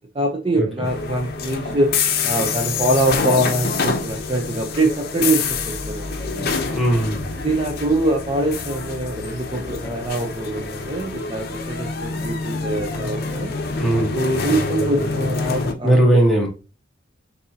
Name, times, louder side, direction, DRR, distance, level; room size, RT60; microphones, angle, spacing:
voice 1, 0.1-1.9 2.2-6.5 7.4-13.5 13.9-16.2, right 1 dB, 30° right, 1 dB, 0.6 m, -24 dB
sound 1, 0.8-15.7, left 4 dB, 55° left, 0.7 m, -26 dB
voice 2, 6.6-7.3 13.8-14.1 15.8-16.5, right 1 dB, ahead, -3 dB, 1.2 m, -18 dB
6.4 x 2.7 x 2.8 m, 0.33 s
head